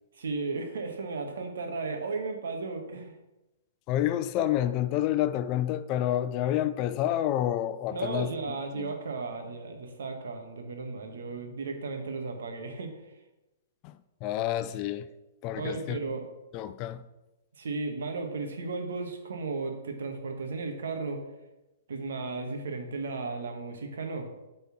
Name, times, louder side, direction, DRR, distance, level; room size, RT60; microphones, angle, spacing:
voice 1, 0.1-3.1 7.9-12.9 15.6-16.2 17.6-21.2 21.9-24.3, right 4 dB, 75° right, 1.6 m, -35 dB
voice 2, 3.9-8.9 13.8-15.1 15.4-16.0 16.5-17.0, left 12 dB, 35° left, 0.5 m, -29 dB
8.2 x 4.3 x 6.0 m
hypercardioid pair, 130°, 0 cm